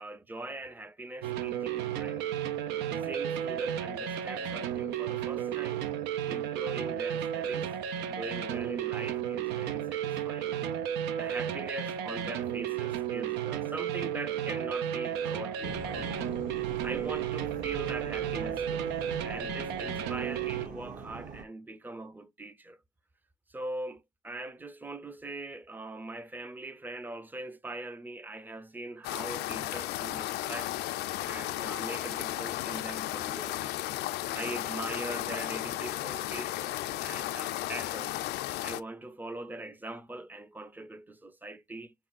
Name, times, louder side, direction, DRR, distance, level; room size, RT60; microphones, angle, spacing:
voice 1, 0.0-2.3 3.0-5.9 6.3-7.8 8.1-10.6 11.1-16.1 16.8-19.0 19.2-22.8 23.5-30.7 31.2-33.8 34.3-38.2 38.6-41.9, right 2 dB, 10° right, 0.5 m, -42 dB
sound 1, 1.2-20.7, right 9 dB, 85° right, 0.6 m, -33 dB
sound 2, 15.6-21.4, right 4 dB, 50° right, 1.2 m, -43 dB
sound 3, 29.0-38.8, left 15 dB, 75° left, 0.4 m, -34 dB
4.3 x 3.7 x 2.4 m
cardioid pair, 110°, 17 cm